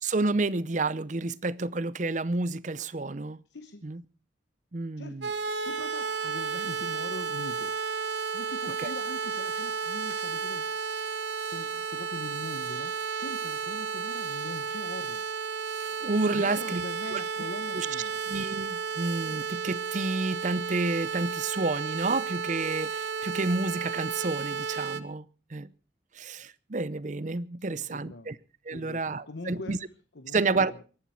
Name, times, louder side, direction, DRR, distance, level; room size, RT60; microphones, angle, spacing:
voice 1, 0.0-3.4 3.8-4.0 4.7-5.3 8.8-8.9 15.8-16.8 17.1-17.2 17.7-17.9 18.3-25.7 26.1-28.4 28.7-29.8 30.3-30.7, right 3 dB, 40° right, 0.7 m, -30 dB
voice 2, 3.5-3.8 5.0-5.3 5.6-7.7 8.3-11.0 11.5-15.2 16.3-18.2 27.6-28.4 28.7-29.8 30.1-30.8, left 2 dB, 75° left, 1.1 m, -42 dB
sound 1, 5.2-25.0, right 6 dB, 75° right, 1.1 m, -33 dB
23.5 x 11.5 x 4.5 m
head